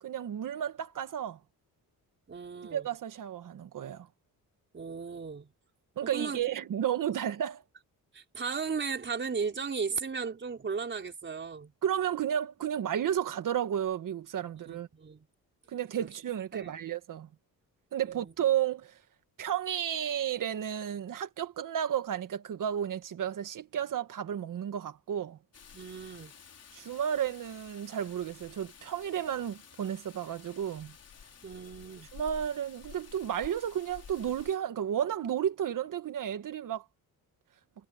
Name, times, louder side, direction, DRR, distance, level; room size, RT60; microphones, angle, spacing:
voice 1, 0.0-1.4 2.7-4.1 6.0-7.6 11.8-14.9 15.7-17.3 17.9-19.0 19.4-25.4 26.7-30.9 32.1-36.8, right 9 dB, 60° right, 1.8 m, -32 dB
voice 2, 2.3-2.9 4.7-5.5 6.0-6.4 8.1-11.7 14.5-15.3 16.0-16.1 16.5-16.8 18.0-18.3 25.7-26.3 31.4-32.1, right 5 dB, 30° right, 4.7 m, -36 dB
Rain, 25.5-34.6, left 6 dB, 40° left, 4.7 m, -52 dB
wide cardioid pair, 165°, 37 cm